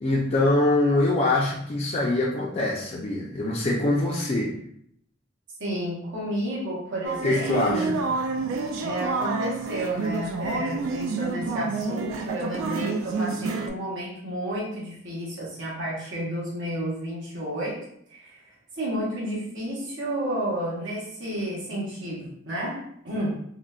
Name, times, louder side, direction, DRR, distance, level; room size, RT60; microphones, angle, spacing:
voice 1, 0.0-4.5 7.2-7.9, left 2 dB, 30° left, -4 dB, 0.3 m, -23 dB
voice 2, 5.6-8.0 8.7-23.3, right 1 dB, 65° right, -6 dB, 0.9 m, -31 dB
sound 1, 7.0-13.7, right 4 dB, 80° right, 0.3 m, -29 dB
3.7 x 2.1 x 2.3 m, 0.69 s
head